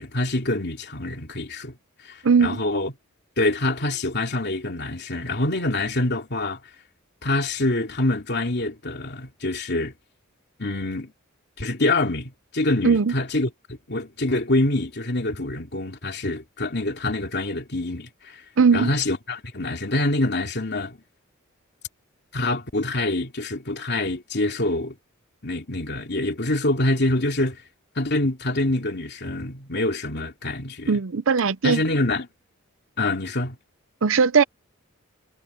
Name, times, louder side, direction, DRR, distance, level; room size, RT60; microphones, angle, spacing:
voice 1, 0.0-1.7 2.0-2.9 3.4-6.6 7.2-9.9 10.6-11.1 11.6-18.4 18.7-21.0 22.3-24.9 25.4-27.6 28.0-31.0 31.6-32.3 33.0-33.6, left 2 dB, 55° left, 2.8 m, -25 dB
voice 2, 2.2-2.6 12.8-13.1 18.6-18.9 30.9-31.8 34.0-34.4, right 5 dB, 70° right, 0.6 m, -19 dB
head